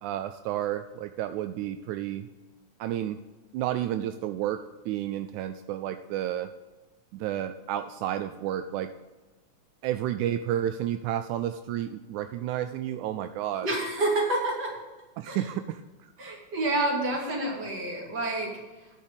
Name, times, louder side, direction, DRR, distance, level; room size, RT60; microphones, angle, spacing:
voice 1, 0.0-2.3 2.8-3.2 3.5-6.5 7.1-8.9 9.8-13.7 15.2-16.1, right 11 dB, 85° right, 10 dB, 1.9 m, -31 dB
voice 2, 13.6-14.7 15.3-15.4 16.2-18.5, right 2 dB, 35° right, -2 dB, 3.1 m, -28 dB
10.0 x 6.8 x 6.7 m, 1.2 s
omnidirectional pair, 3.5 m